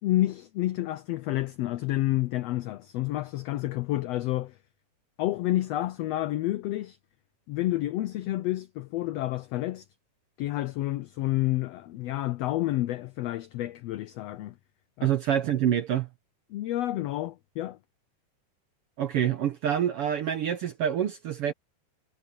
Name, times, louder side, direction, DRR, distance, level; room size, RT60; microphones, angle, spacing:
voice 1, 0.0-4.6 5.2-7.0 7.5-9.9 10.4-14.5 15.0-15.2 16.5-17.8, left 16 dB, 85° left, 1.4 m, -29 dB
voice 2, 15.0-16.1 19.0-21.5, right 10 dB, 70° right, 1.4 m, -26 dB
omnidirectional pair, 3.6 m